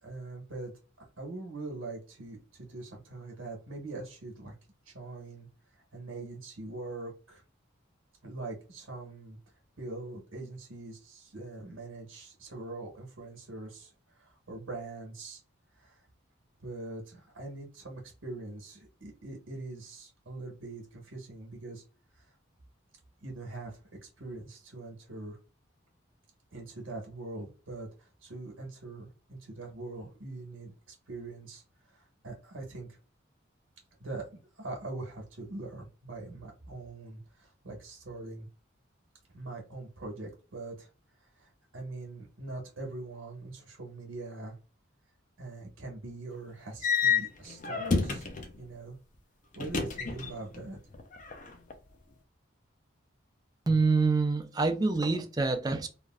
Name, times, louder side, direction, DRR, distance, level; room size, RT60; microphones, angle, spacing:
voice 1, 0.0-0.7 1.2-4.5 4.8-5.5 5.9-7.4 8.2-9.4 9.8-15.4 15.8-16.0 16.6-21.8 22.2-22.3 23.2-25.4 26.5-31.6 31.9-33.0 34.0-34.3 34.5-38.5 39.3-40.9 41.3-44.6 45.4-48.3 48.6-49.0 49.5-50.8, right 2 dB, 75° right, 1.2 m, -42 dB
sound 1, 46.8-48.6 49.5-50.6 50.9-51.7, left 5 dB, 40° left, 0.5 m, -30 dB
voice 2, 53.7-55.9, right 3 dB, 20° right, 0.4 m, -26 dB
3.3 x 2.5 x 2.3 m
head